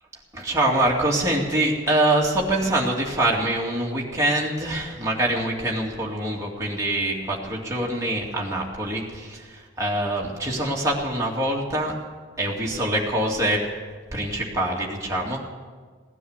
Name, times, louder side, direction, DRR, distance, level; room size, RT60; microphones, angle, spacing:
voice 1, 0.3-11.9 12.4-13.6 14.1-15.4, right 1 dB, 15° right, -3 dB, 2.4 m, -24 dB
17.5 x 10.0 x 8.1 m, 1.5 s
head